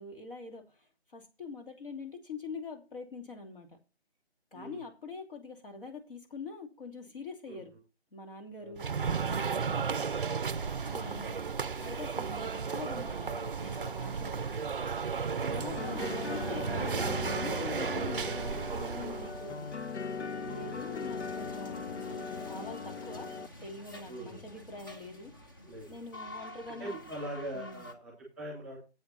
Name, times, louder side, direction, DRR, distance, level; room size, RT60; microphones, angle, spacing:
voice 1, 0.0-3.8 4.5-7.7 8.1-8.9 9.3-9.9 10.9-11.4 11.8-14.5 15.4-19.7 20.5-23.3 23.6-25.3 25.9-27.0 27.5-27.8, left 4 dB, 55° left, 3 dB, 2.9 m, -44 dB
sound 1, 8.8-19.4, right 5 dB, 55° right, 0.5 m, -34 dB
sound 2, 10.5-27.9, left 1 dB, 20° left, 0.7 m, -49 dB
sound 3, 15.5-23.5, left 5 dB, 85° left, 0.7 m, -39 dB
voice 2, 24.1-24.4 25.6-25.9 26.7-28.8, right 1 dB, ahead, 0 dB, 2.3 m, -43 dB
8.1 x 7.0 x 5.6 m, 0.30 s
figure-of-eight pair, 155°, 33 cm